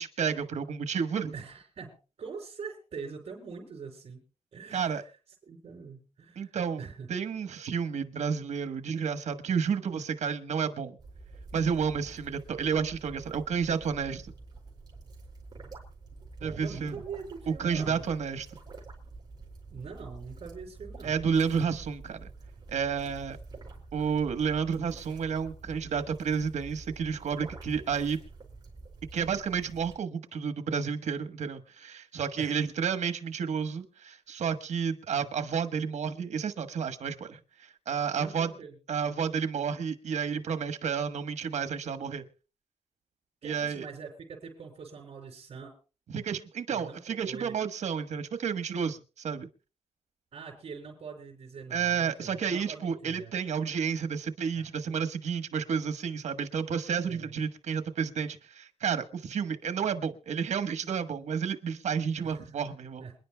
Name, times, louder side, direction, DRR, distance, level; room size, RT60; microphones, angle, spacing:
voice 1, 0.0-1.3 4.7-5.0 6.4-11.0 11.5-14.3 16.4-17.0 17.5-18.5 21.0-22.3 22.7-23.4 23.9-28.2 29.1-38.5 38.9-42.2 43.4-43.8 46.1-49.5 51.7-63.0, right 6 dB, 80° right, 8 dB, 1.3 m, -31 dB
voice 2, 1.3-4.2 4.5-5.0 5.4-7.1 16.4-18.1 19.7-21.2 32.4-32.6 38.2-38.8 43.4-45.7 46.7-47.5 50.3-53.3 54.5-54.7 57.1-57.3 62.2-62.6 63.0-63.2, right 5 dB, 55° right, -3 dB, 6.0 m, -43 dB
sound 1, 11.0-30.0, right 3 dB, 35° right, 5.3 m, -48 dB
27.5 x 10.5 x 2.3 m, 0.33 s
wide cardioid pair, 140°, 12 cm